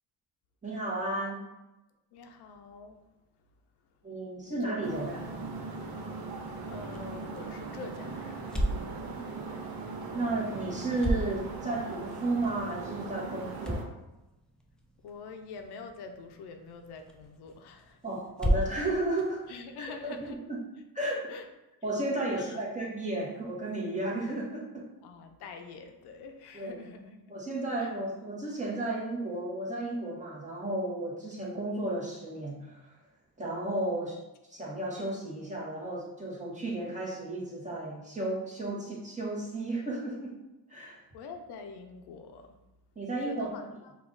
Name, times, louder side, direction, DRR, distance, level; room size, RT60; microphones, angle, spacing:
voice 1, 0.6-1.4 4.0-5.3 9.0-9.3 10.1-13.9 18.0-19.5 19.8-20.6 20.9-21.2 21.8-24.9 26.5-26.8 27.3-32.9 33.4-34.2 34.5-40.3 40.7-41.0 42.9-43.7, right 2 dB, 20° right, -4 dB, 1.3 m, -33 dB
voice 2, 2.1-3.0 4.4-4.8 6.7-8.8 15.0-18.0 19.5-20.4 21.0-21.4 22.1-22.6 25.0-27.4 27.8-27.9 41.1-42.5 43.2-43.9, left 4 dB, 75° left, 5 dB, 0.6 m, -46 dB
sound 1, 4.8-13.8, right 3 dB, 65° right, 0.9 m, -39 dB
sound 2, 6.8-20.4, equal, ahead, 0.4 m, -37 dB
4.9 x 2.5 x 3.8 m, 0.98 s
cardioid pair, 115°, 40 cm